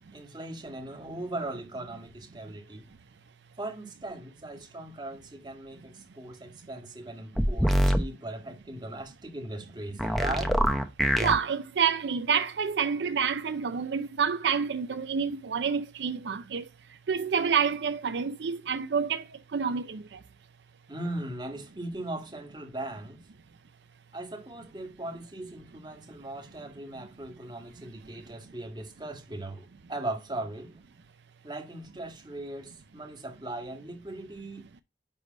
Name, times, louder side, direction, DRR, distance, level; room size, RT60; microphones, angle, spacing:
voice 1, 0.1-2.9 3.6-10.6 20.9-23.2 24.1-30.7 31.4-34.7, right 2 dB, 25° right, 1.8 m, -39 dB
sound 1, 7.4-8.0 10.0-11.3, equal, ahead, 0.8 m, -24 dB
voice 2, 11.2-16.6 17.1-19.2 19.5-20.0, right 6 dB, 75° right, 0.5 m, -28 dB
10.0 x 3.3 x 5.2 m
head